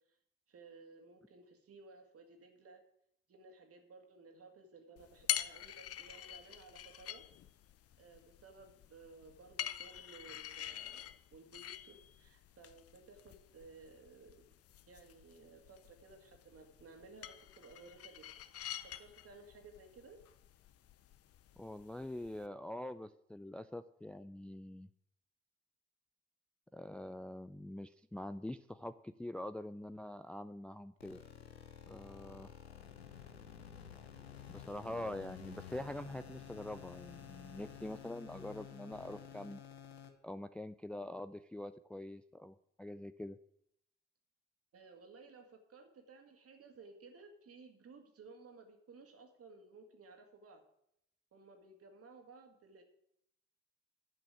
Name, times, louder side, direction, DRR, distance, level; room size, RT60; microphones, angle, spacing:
voice 1, 0.5-2.8 3.3-7.2 8.0-11.1 11.3-14.4 14.9-18.3 18.8-20.2 44.7-50.6 51.3-52.8, right 3 dB, 50° right, 4 dB, 2.3 m, -57 dB
sound 1, 5.0-22.5, left 11 dB, 50° left, 0.7 m, -46 dB
voice 2, 21.6-24.9 26.7-31.2 31.9-32.5 34.5-39.6 40.2-43.4, left 1 dB, 5° left, 12 dB, 0.4 m, -45 dB
sound 2, 31.0-40.1, left 9 dB, 90° left, 0.9 m, -52 dB
9.8 x 6.0 x 8.4 m, 0.74 s
figure-of-eight pair, 45°, 31 cm